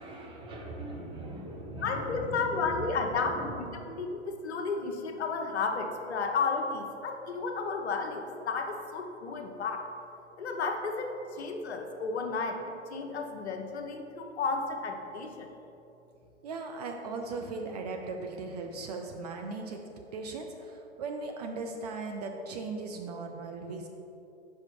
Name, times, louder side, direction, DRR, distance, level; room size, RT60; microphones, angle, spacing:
voice 1, 0.0-3.7, right 2 dB, 15° right, -2 dB, 0.9 m, -40 dB
voice 2, 1.8-9.8 10.4-12.6 12.9-15.5, left 4 dB, 65° left, 4 dB, 0.9 m, -33 dB
voice 3, 16.4-19.8 20.1-23.9, right 3 dB, 35° right, 3 dB, 0.4 m, -38 dB
5.8 x 5.3 x 4.4 m, 2.8 s
figure-of-eight pair, 120°, 36 cm